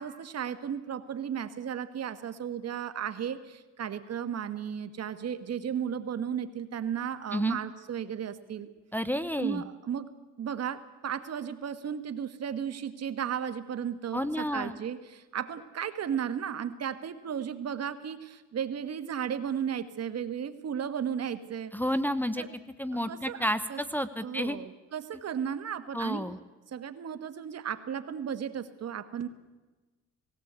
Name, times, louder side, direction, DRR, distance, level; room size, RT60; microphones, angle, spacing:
voice 1, 0.0-8.7 9.4-10.1 10.4-21.7 22.4-22.5 23.1-23.8 24.2-26.2 26.7-29.3, right 8 dB, 55° right, 11 dB, 1.5 m, -34 dB
voice 2, 8.9-9.6 14.1-14.8 21.7-22.4 22.8-24.6 25.9-26.4, equal, 5° left, 10 dB, 0.9 m, -30 dB
19.0 x 17.5 x 8.1 m, 1.2 s
cardioid pair, 90°, 30 cm